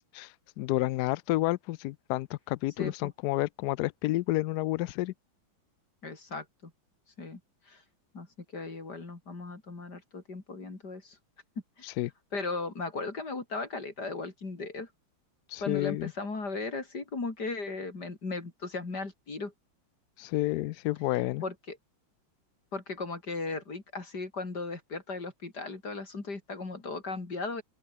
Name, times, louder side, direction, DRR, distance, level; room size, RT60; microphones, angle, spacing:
voice 1, 0.6-5.1 12.0-12.1 15.5-16.1 20.2-21.4, left 17 dB, 80° left, 0.9 m, -30 dB
voice 2, 2.8-3.1 6.0-6.7 7.2-7.4 7.7-7.8 8.1-8.3 8.5-11.2 11.8-11.9 12.3-14.9 15.6-19.5 21.4-21.8 22.7-27.6, left 3 dB, 50° left, 4.5 m, -37 dB
open air
omnidirectional pair, 2.2 m